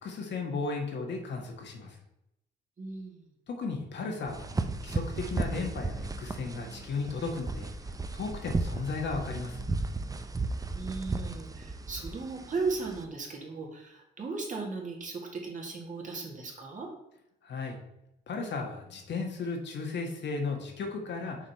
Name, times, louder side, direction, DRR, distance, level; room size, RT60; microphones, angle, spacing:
voice 1, 0.0-2.0 3.5-4.5 4.8-7.7 8.1-9.7 17.4-17.8 18.3-21.4, left 4 dB, 60° left, 2 dB, 1.4 m, -35 dB
voice 2, 2.8-3.3 10.7-16.9, right 4 dB, 40° right, 0 dB, 1.8 m, -36 dB
sound 1, 4.3-13.0, right 3 dB, 20° right, 0.5 m, -35 dB
6.2 x 4.2 x 4.1 m, 0.85 s
cardioid pair, 90°, 20 cm